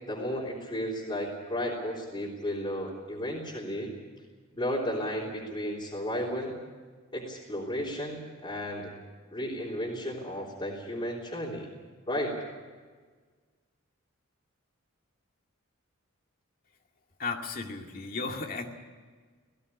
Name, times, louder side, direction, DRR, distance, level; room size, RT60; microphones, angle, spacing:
voice 1, 0.1-3.9 4.5-6.5 7.1-8.9 9.3-11.7 12.1-12.3, equal, 25° left, -7 dB, 3.5 m, -33 dB
voice 2, 17.2-18.7, left 4 dB, 40° left, 3 dB, 2.3 m, -34 dB
18.5 x 17.0 x 10.0 m, 1.5 s
head